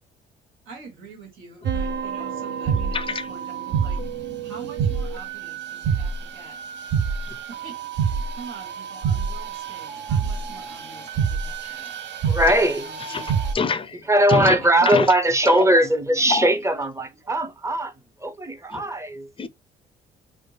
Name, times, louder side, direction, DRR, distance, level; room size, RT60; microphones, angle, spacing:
voice 1, 0.6-4.0 4.4-6.6 7.3-12.0 12.6-13.3 13.8-14.1 14.6-14.7 15.4-15.5, right 5 dB, 90° right, 1.4 m, -45 dB
sound 1, 1.6-13.5, right 6 dB, 60° right, 0.6 m, -27 dB
voice 2, 2.9-3.3 7.3-7.4 11.6-11.8 13.1-13.3 13.5-14.0 14.3-14.6 14.9-15.1 15.5-15.7 16.3-16.5 18.7-18.8 19.4-19.5, left 5 dB, 25° left, 0.4 m, -25 dB
voice 3, 12.3-12.9 14.1-17.9 18.2-19.3, right 1 dB, 15° right, 0.6 m, -20 dB
3.4 x 2.0 x 3.2 m
supercardioid pair, 65°, 20 cm